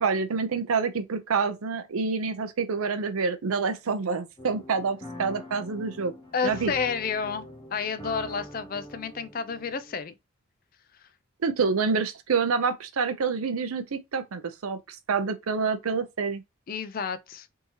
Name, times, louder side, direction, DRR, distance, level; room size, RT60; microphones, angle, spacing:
voice 1, 0.0-6.1 6.4-6.7 11.4-16.4, right 5 dB, 85° right, 0.6 m, -27 dB
sound 1, 4.4-10.0, left 1 dB, 25° left, 0.8 m, -44 dB
voice 2, 6.3-10.1 10.9-11.1 16.7-17.5, left 5 dB, 45° left, 0.4 m, -31 dB
3.6 x 2.8 x 2.9 m
head